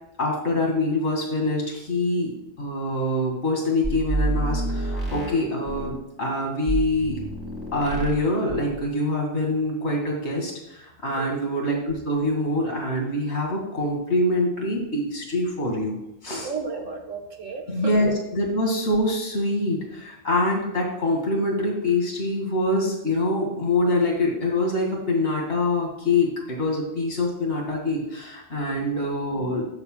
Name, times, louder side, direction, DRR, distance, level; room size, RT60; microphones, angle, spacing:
voice 1, 0.2-7.2 7.7-16.0 16.2-16.5 17.7-29.6, left 1 dB, 55° left, -1 dB, 2.4 m, -25 dB
sound 1, 3.8-6.0 6.7-8.2 8.5-8.8, right 1 dB, 15° right, 2.2 m, -28 dB
voice 2, 16.4-17.9 28.7-29.1, right 5 dB, 75° right, 2 dB, 1.5 m, -34 dB
13.0 x 7.0 x 2.3 m, 0.90 s
omnidirectional pair, 1.3 m